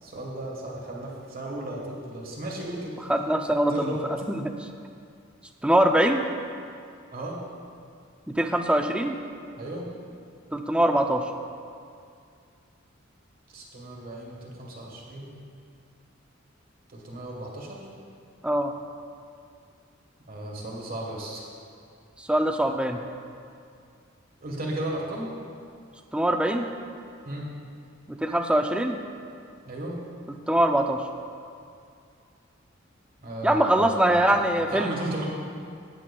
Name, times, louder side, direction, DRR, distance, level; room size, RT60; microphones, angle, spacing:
voice 1, 0.0-2.9 3.7-4.0 7.1-7.4 9.6-9.9 13.5-15.4 16.9-17.9 20.3-21.5 24.4-25.3 27.3-27.5 29.6-30.0 33.2-34.4 34.7-35.2, right 1 dB, 50° right, -2 dB, 1.3 m, -35 dB
voice 2, 3.1-4.7 5.6-6.2 8.4-9.1 10.5-11.2 18.4-18.7 22.2-23.0 26.1-26.7 28.1-29.0 30.5-31.0 33.4-35.0, right 1 dB, 5° right, 5 dB, 0.4 m, -23 dB
16.5 x 7.5 x 2.3 m, 2.3 s
head